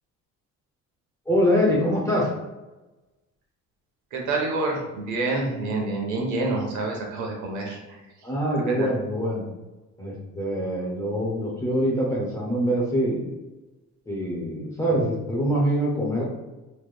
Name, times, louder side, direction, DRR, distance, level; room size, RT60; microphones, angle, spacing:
voice 1, 1.3-2.3 8.2-9.4 10.0-13.2 14.1-16.2, equal, 10° left, -5 dB, 0.4 m, -24 dB
voice 2, 4.1-7.8 8.6-8.9, right 2 dB, 60° right, 0 dB, 0.8 m, -27 dB
3.1 x 2.1 x 3.3 m, 1.1 s
cardioid pair, 175°, 33 cm